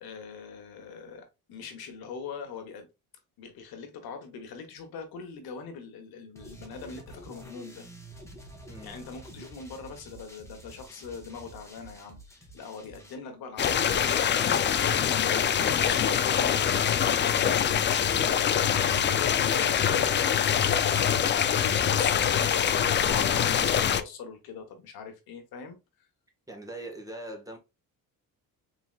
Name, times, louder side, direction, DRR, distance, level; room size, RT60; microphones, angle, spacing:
voice 1, 0.0-2.9 3.4-7.9 8.8-20.6 21.2-26.1, left 5 dB, 75° left, 1.2 m, -42 dB
sound 1, 6.4-13.1, right 1 dB, 10° left, 1.2 m, -48 dB
sound 2, 13.6-24.0, left 8 dB, 30° left, 0.4 m, -24 dB
voice 2, 26.5-27.6, right 1 dB, 10° right, 1.4 m, -41 dB
4.0 x 4.0 x 2.4 m
cardioid pair, 105°, 37 cm